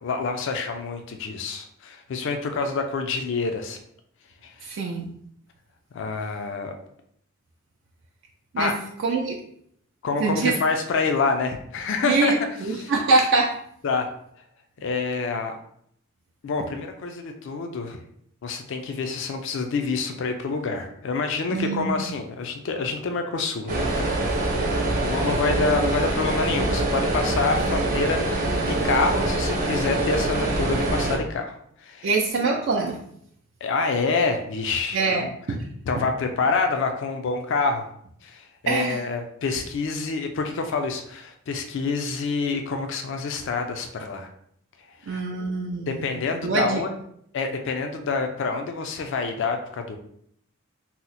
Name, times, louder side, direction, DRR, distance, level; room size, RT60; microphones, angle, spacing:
voice 1, 0.0-3.8 4.4-4.7 5.9-6.8 8.6-8.7 10.0-12.3 12.8-12.9 13.8-14.1 14.8-15.6 16.4-18.0 18.4-24.3 25.0-32.1 33.6-35.3 35.9-37.9 38.2-44.3 45.0-45.2 45.9-46.9 47.3-50.0, left 4 dB, 65° left, 5 dB, 0.4 m, -27 dB
voice 2, 4.6-5.1 8.5-8.7 9.0-9.4 10.2-10.5 12.0-13.6 21.5-22.2 32.0-33.0 34.9-35.6 36.0-36.1 38.7-39.0 45.1-46.8, right 3 dB, 60° right, -1 dB, 0.4 m, -24 dB
sound 1, 23.7-31.2, right 2 dB, 40° right, 0.8 m, -24 dB
2.8 x 2.0 x 3.9 m, 0.69 s
head